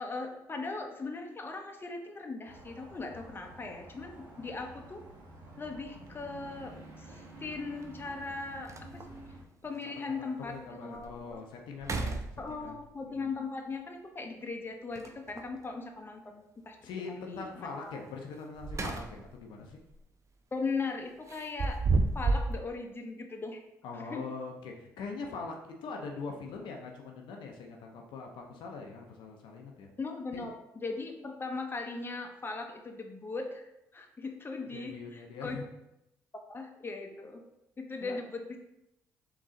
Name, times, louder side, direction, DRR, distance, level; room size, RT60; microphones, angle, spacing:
voice 1, 0.0-5.0 5.6-9.0 9.6-11.4 12.4-16.8 17.1-18.0 20.5-21.8 22.1-23.6 23.9-24.3 30.0-35.6 36.5-37.4 37.8-38.6, left 3 dB, 25° left, 3 dB, 0.7 m, -39 dB
sound 1, 2.4-9.4, right 1 dB, 75° right, 1.2 m, -50 dB
sound 2, 5.9-6.1 7.8-7.9 8.3-8.4 8.7-9.2 9.8-9.9 10.4-10.5 10.9-11.3 11.7-12.8 14.9-15.6 18.3-19.4 19.8-20.0 21.3-22.6, right 3 dB, 40° right, 0.5 m, -32 dB
voice 2, 10.1-12.8 13.0-13.2 16.8-19.8 23.8-29.9 30.3-30.4 34.7-35.7 38.0-38.2, left 4 dB, 75° left, 1 dB, 0.6 m, -42 dB
3.8 x 3.1 x 3.7 m, 0.86 s
supercardioid pair, 60°, 8 cm